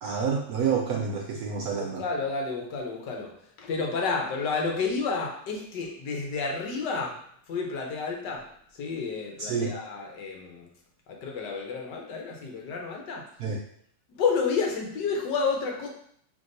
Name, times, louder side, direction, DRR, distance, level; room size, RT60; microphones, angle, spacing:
voice 1, 0.0-2.0 9.4-9.7 13.4-13.6, right 6 dB, 70° right, 0 dB, 0.9 m, -28 dB
voice 2, 1.8-7.2 7.5-8.5 8.7-10.7 11.1-13.3 14.1-15.9, left 4 dB, 70° left, 1 dB, 1.4 m, -30 dB
5.3 x 3.4 x 2.6 m, 0.65 s
omnidirectional pair, 2.0 m